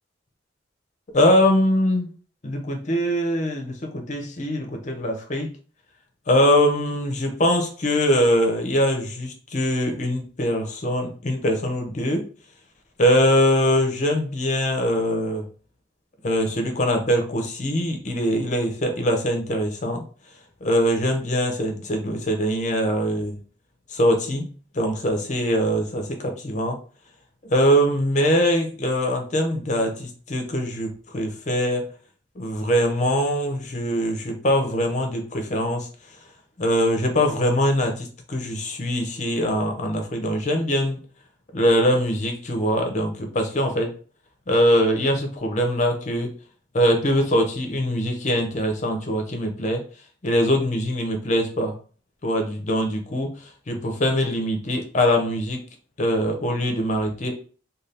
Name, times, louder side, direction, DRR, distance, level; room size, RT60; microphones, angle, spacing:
voice 1, 1.1-2.1 2.4-5.6 6.3-12.2 13.0-15.4 16.2-20.1 20.6-23.4 23.9-24.5 24.7-26.8 27.5-31.9 32.4-35.9 36.6-41.0 41.5-44.0 44.5-46.3 46.7-49.8 50.2-51.8 52.2-55.6 56.0-57.3, equal, 40° left, 3 dB, 0.6 m, -22 dB
2.6 x 2.3 x 3.3 m, 0.40 s
head